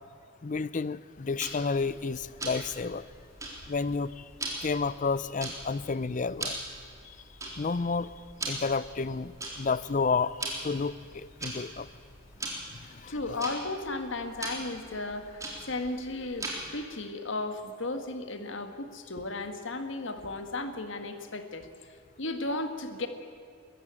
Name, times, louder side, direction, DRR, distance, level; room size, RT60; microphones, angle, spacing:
voice 1, 0.4-3.1 3.7-4.2 4.6-6.6 7.6-8.1 8.5-9.3 9.6-11.9 12.9-13.2, left 4 dB, 40° left, 18 dB, 0.5 m, -30 dB
Tick-tock, 1.4-16.8, right 2 dB, 15° right, 3.8 m, -41 dB
voice 2, 13.1-23.1, left 2 dB, 65° left, 8 dB, 1.6 m, -35 dB
22.0 x 14.5 x 8.9 m, 2.3 s
head